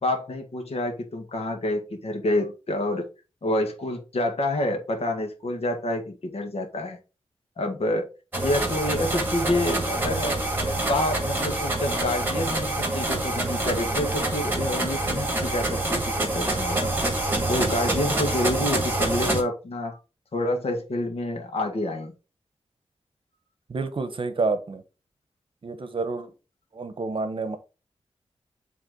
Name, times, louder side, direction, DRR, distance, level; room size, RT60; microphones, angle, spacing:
voice 1, 0.0-3.1 3.4-7.0 7.6-8.1 8.4-10.4 10.7-16.9 17.5-20.0 20.3-22.1, left 1 dB, 70° left, 3 dB, 1.8 m, -28 dB
sound 1, 8.3-19.4, right 2 dB, 20° right, 1.9 m, -26 dB
voice 2, 23.7-24.8 25.6-26.3 26.7-27.6, right 3 dB, 55° right, 10 dB, 0.9 m, -28 dB
8.1 x 3.5 x 3.8 m, 0.31 s
wide cardioid pair, 125°, 11 cm